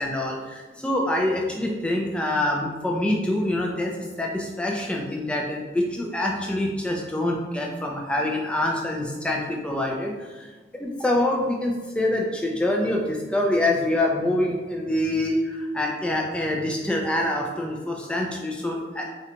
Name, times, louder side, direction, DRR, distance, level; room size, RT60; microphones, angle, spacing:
voice 1, 0.0-10.5 10.8-19.0, left 1 dB, 5° left, -1 dB, 0.3 m, -25 dB
3.8 x 2.2 x 2.8 m, 1.3 s
head